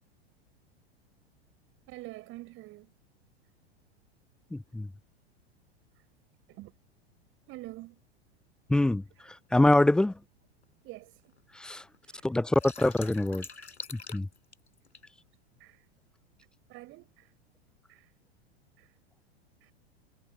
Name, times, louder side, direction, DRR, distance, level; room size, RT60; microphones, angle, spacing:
voice 1, 1.9-2.9 5.9-6.1 6.5-6.8 7.5-8.0 9.1-9.3 10.8-11.4 12.0-12.3 15.6-15.9 16.7-17.4 17.9-18.1 18.8-19.0 19.6-19.7, right 19 dB, 40° right, 6.9 m, -47 dB
voice 2, 4.5-4.9 8.7-10.1 11.5-11.8 12.2-13.4 13.9-14.3, left 1 dB, 5° left, 0.4 m, -25 dB
sound 1, 9.3-9.4 10.1-10.2 10.6-10.7 10.9-11.6 11.9-15.1, left 4 dB, 80° left, 7.3 m, -44 dB
figure-of-eight pair, 90°, 33 cm